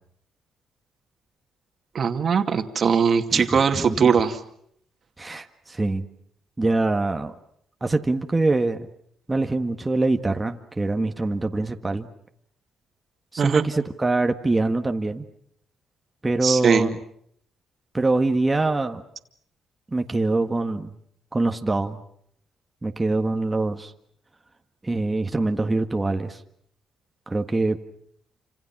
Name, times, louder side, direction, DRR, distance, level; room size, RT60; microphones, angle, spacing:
voice 1, 1.9-4.4 13.4-13.6 16.4-16.9, right 6 dB, 50° right, 6 dB, 2.4 m, -20 dB
voice 2, 3.7-4.1 5.2-6.0 6.6-7.3 7.8-8.9 9.3-12.1 13.3-15.2 16.2-17.0 17.9-19.0 19.9-20.9 21.3-22.0 22.8-23.9 24.8-26.4 27.3-27.8, right 2 dB, 20° right, 5 dB, 1.6 m, -24 dB
28.5 x 26.5 x 6.0 m, 0.68 s
cardioid pair, 90°, 0 cm